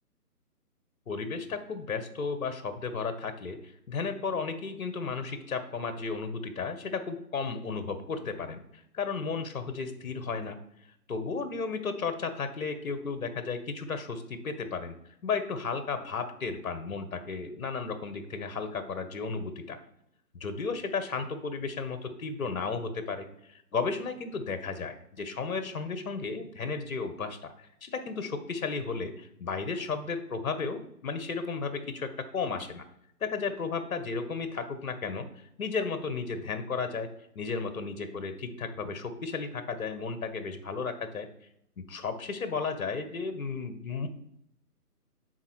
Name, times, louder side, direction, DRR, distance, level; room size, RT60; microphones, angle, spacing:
voice 1, 1.1-10.6 11.1-15.0 15.2-19.8 20.3-32.8 33.2-35.3 35.6-37.1 37.3-41.3 41.8-44.1, left 4 dB, 60° left, 10 dB, 1.1 m, -34 dB
10.5 x 4.4 x 3.1 m, 0.76 s
figure-of-eight pair, 150°, 47 cm